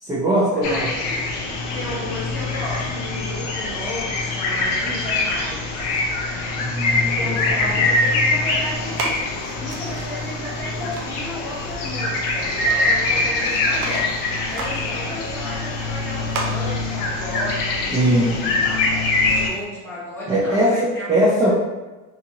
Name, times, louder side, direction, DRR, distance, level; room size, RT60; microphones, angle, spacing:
voice 1, 0.0-0.9 6.6-7.7 17.9-18.3 20.3-21.5, right 1 dB, 10° right, -8 dB, 0.4 m, -20 dB
sound 1, 0.6-19.5, left 2 dB, 65° left, 0.7 m, -24 dB
voice 2, 1.7-5.8 7.2-9.1 9.6-21.5, left 1 dB, 5° left, -9 dB, 1.1 m, -33 dB
sound 2, 8.0-19.6, right 2 dB, 75° right, 0.7 m, -37 dB
3.0 x 2.4 x 2.7 m, 1.2 s
cardioid pair, 135°, 39 cm